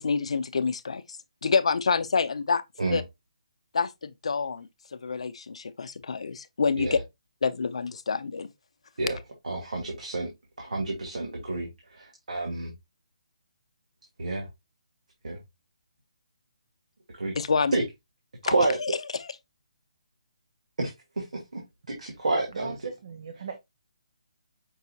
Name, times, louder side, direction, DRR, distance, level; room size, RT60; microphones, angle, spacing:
voice 1, 0.0-2.6 2.9-3.0 3.7-7.0 7.4-8.5 17.3-17.7 18.4-19.4, left 5 dB, 55° left, 0.5 m, -28 dB
voice 2, 9.4-10.3 10.6-11.7 12.0-12.7 14.2-14.5 15.2-15.4 17.2-17.3 17.7-17.8 18.4-18.8 20.8-21.6 21.9-22.8, right 2 dB, 85° right, 1.6 m, -29 dB
voice 3, 22.5-23.6, right 6 dB, 35° right, 0.5 m, -39 dB
5.4 x 4.1 x 2.3 m
hypercardioid pair, 175°, 4 cm